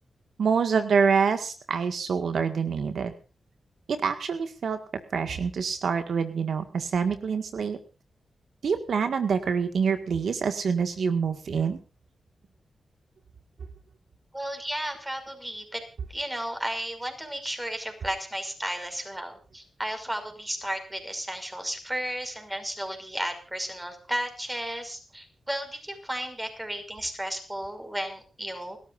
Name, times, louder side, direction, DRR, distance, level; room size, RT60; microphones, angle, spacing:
voice 1, 0.4-3.1 3.9-4.8 5.1-7.8 8.6-11.8, right 6 dB, 75° right, 8 dB, 1.8 m, -26 dB
voice 2, 14.3-15.8 16.1-28.8, right 1 dB, 10° right, 7 dB, 5.8 m, -33 dB
29.0 x 13.5 x 2.6 m, 0.34 s
cardioid pair, 70°, 0 cm